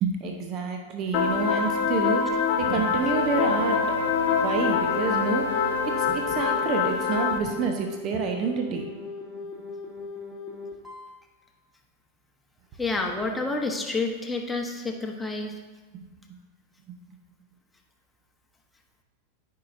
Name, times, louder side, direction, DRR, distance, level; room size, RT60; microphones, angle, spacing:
voice 1, 0.0-3.9 4.3-8.9 15.9-16.1 16.9-17.0, right 5 dB, 35° right, 4 dB, 0.8 m, -29 dB
sound 1, 1.1-7.4, left 6 dB, 45° left, 0.9 m, -25 dB
sound 2, 2.5-6.4, left 1 dB, 80° left, 0.3 m, -34 dB
sound 3, 4.6-11.2 13.0-13.1, left 4 dB, 10° right, 1.7 m, -39 dB
voice 2, 12.8-15.5, left 3 dB, 10° left, 1 dB, 1.0 m, -29 dB
13.5 x 5.6 x 2.6 m, 1.3 s
figure-of-eight pair, 90°, 0 cm